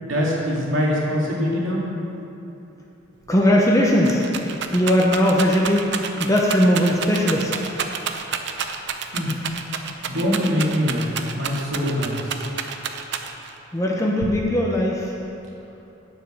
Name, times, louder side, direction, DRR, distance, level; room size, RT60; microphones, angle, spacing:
voice 1, 0.0-1.8 9.1-9.3 10.1-11.0 11.3-12.1, equal, 75° right, -5 dB, 2.6 m, -23 dB
voice 2, 3.3-4.3 4.7-5.9 6.2-7.7 13.7-15.1, equal, 15° left, -2 dB, 0.9 m, -19 dB
Rattle, 3.3-3.4 3.6-13.6 14.2-14.8, right 6 dB, 60° right, 0.7 m, -30 dB
9.3 x 7.9 x 6.5 m, 2.8 s
head